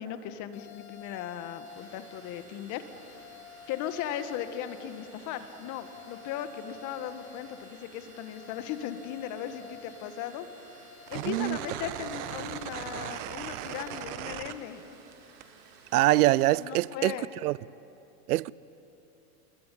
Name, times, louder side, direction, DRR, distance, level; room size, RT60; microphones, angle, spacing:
voice 1, 0.0-2.8 3.7-10.5 11.1-14.8 16.6-17.3, left 10 dB, 40° left, 1.8 m, -37 dB
sound 1, 0.5-14.0, left 4 dB, 55° left, 4.6 m, -50 dB
Water, 1.6-16.6, right 4 dB, 90° right, 6.1 m, -57 dB
sound 2, 11.1-15.1 15.4-16.5, right 12 dB, 50° right, 1.4 m, -38 dB
voice 2, 11.1-11.6 15.9-17.6 18.3-18.5, right 17 dB, 70° right, 0.6 m, -24 dB
26.5 x 22.0 x 8.6 m
hypercardioid pair, 130°, 47 cm